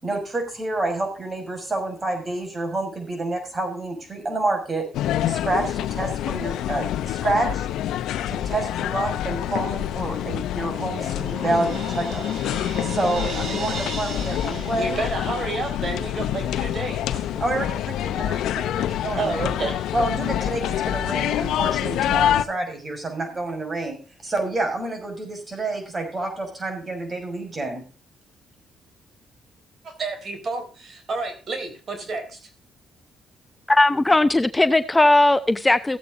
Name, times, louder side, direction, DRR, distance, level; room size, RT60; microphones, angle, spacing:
voice 1, 0.0-4.9 5.3-7.7 8.3-12.2 12.8-15.0 17.4-19.6 19.9-24.0 24.2-27.8, right 2 dB, 30° right, 4 dB, 6.3 m, -28 dB
sound 1, 4.9-22.4, left 11 dB, 85° left, 0.8 m, -26 dB
Crash cymbal, 10.1-15.8, right 3 dB, 70° right, 4.6 m, -36 dB
voice 2, 14.8-17.2 19.2-19.9 29.8-32.4, right 3 dB, 45° right, 6 dB, 3.9 m, -30 dB
voice 3, 33.7-36.0, left 2 dB, 15° left, 12 dB, 0.7 m, -18 dB
16.0 x 8.5 x 3.9 m, 0.35 s
cardioid pair, 90°, 0 cm